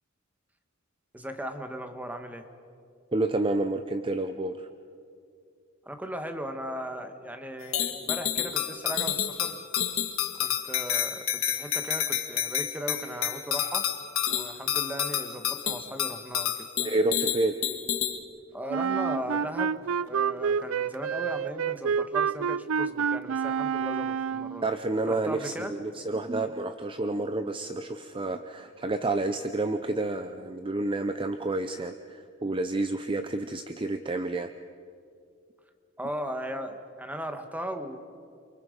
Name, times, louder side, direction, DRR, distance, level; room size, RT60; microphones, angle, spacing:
voice 1, 1.1-2.5 5.8-9.6 10.4-13.9 14.3-16.7 18.5-24.7 25.0-25.7 36.0-38.0, equal, 10° right, 7 dB, 1.4 m, -37 dB
voice 2, 3.1-4.7 16.8-17.6 24.6-34.5, right 2 dB, 25° right, 9 dB, 0.6 m, -29 dB
sound 1, 7.7-18.2, left 10 dB, 70° left, 1.8 m, -29 dB
Wind instrument woodwind instrument, 18.7-24.6, right 6 dB, 70° right, 0.5 m, -28 dB
28.5 x 24.5 x 5.2 m, 2.4 s
head